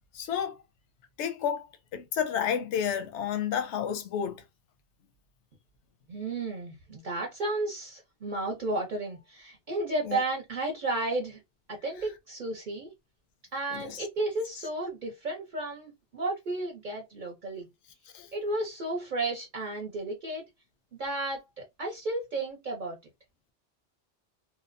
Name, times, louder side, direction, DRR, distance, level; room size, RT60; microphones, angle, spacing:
voice 1, 0.1-0.6 1.2-1.7 1.9-4.4 10.0-10.2 13.7-14.0 18.1-18.3, left 8 dB, 85° left, 0.9 m, -31 dB
voice 2, 6.1-11.4 11.7-12.9 13.5-17.7 18.3-20.4 20.9-23.0, right 2 dB, 50° right, 0.7 m, -33 dB
2.7 x 2.0 x 2.5 m
omnidirectional pair, 1.2 m